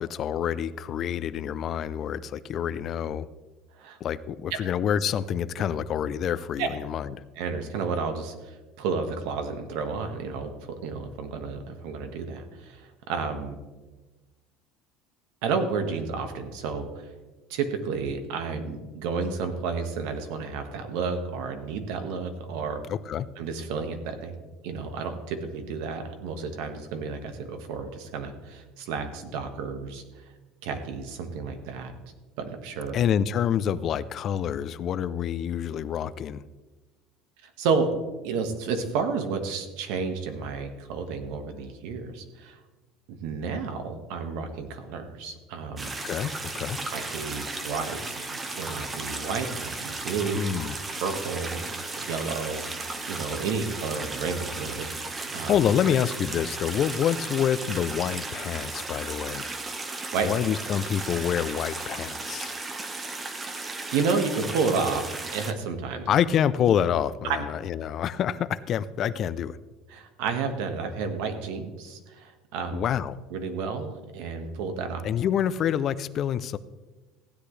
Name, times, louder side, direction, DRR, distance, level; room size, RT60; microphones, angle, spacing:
voice 1, 0.0-3.3 4.0-7.2 22.9-23.3 32.9-36.4 45.8-46.8 50.3-50.7 55.5-59.5 60.2-62.5 66.1-69.6 72.7-73.2 75.0-76.6, left 9 dB, 40° left, 15 dB, 0.5 m, -27 dB
voice 2, 7.4-10.5 10.8-13.6 15.4-16.9 17.5-22.8 23.4-24.3 24.6-30.0 30.6-31.9 32.4-33.0 37.6-42.6 43.1-45.9 46.9-50.4 50.9-51.6 52.0-52.6 53.1-55.6 60.1-60.3 63.9-66.1 67.2-67.4 69.9-72.8 73.3-75.0, right 5 dB, 75° right, 6 dB, 1.6 m, -31 dB
sound 1, 45.8-65.5, right 3 dB, 20° right, 1.0 m, -35 dB
15.5 x 10.0 x 3.3 m, 1.2 s
cardioid pair, 145°, 0 cm